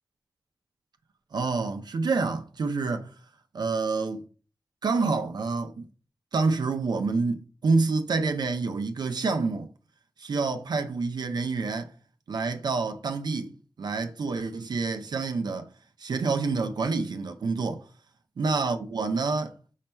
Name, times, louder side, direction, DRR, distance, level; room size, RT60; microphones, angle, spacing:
voice 1, 1.3-3.1 3.5-4.2 4.8-5.9 6.3-9.7 10.2-11.9 12.3-15.7 16.0-17.9 18.4-19.5, right 4 dB, 75° right, 0.4 m, -28 dB
5.5 x 2.2 x 4.2 m
wide cardioid pair, 95°, 7 cm